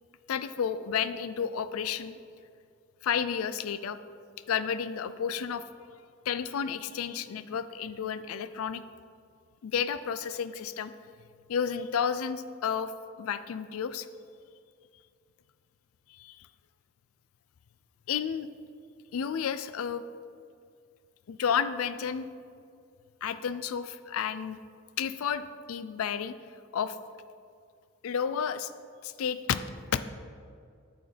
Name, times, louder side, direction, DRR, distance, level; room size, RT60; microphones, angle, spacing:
voice 1, 0.3-2.2 3.0-4.0 4.5-5.6 6.3-8.8 9.6-10.9 11.5-12.9 13.2-14.1 16.1-16.5 18.1-18.5 19.1-20.0 21.3-22.3 23.2-24.6 25.0-26.3 26.7-27.0 28.0-28.7 29.0-29.6 29.9-30.1, left 7 dB, 80° left, 13 dB, 0.4 m, -31 dB
8.3 x 7.9 x 3.3 m, 2.3 s
head